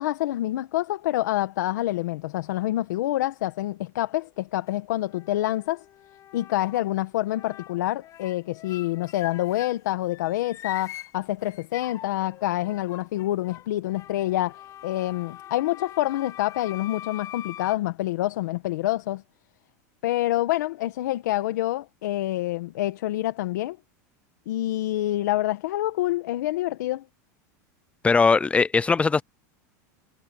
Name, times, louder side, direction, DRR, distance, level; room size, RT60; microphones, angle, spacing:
voice 1, 0.0-5.8 6.3-19.2 20.0-23.8 24.5-27.0, left 15 dB, 80° left, 1.5 m, -27 dB
sound 1, 4.2-4.7 5.1-6.9 7.3-9.8 10.1-17.7, left 12 dB, 35° left, 7.4 m, -43 dB
voice 2, 28.0-29.2, left 4 dB, 15° left, 0.6 m, -20 dB
supercardioid pair, 135°, 10 cm